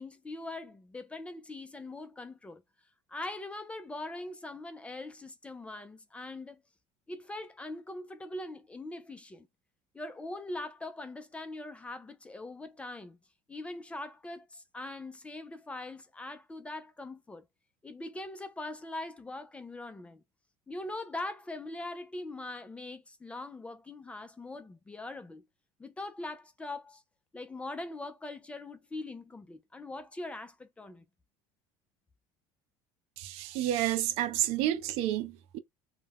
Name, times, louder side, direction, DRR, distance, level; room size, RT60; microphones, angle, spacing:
voice 1, 0.0-2.6 3.1-6.6 7.1-9.5 9.9-13.2 13.5-17.4 17.8-20.2 20.7-25.4 25.8-27.0 27.3-31.0, left 2 dB, 10° left, 0.3 m, -42 dB
voice 2, 33.2-35.6, right 13 dB, 60° right, 0.4 m, -30 dB
2.3 x 2.1 x 3.3 m
cardioid pair, 145°, 12 cm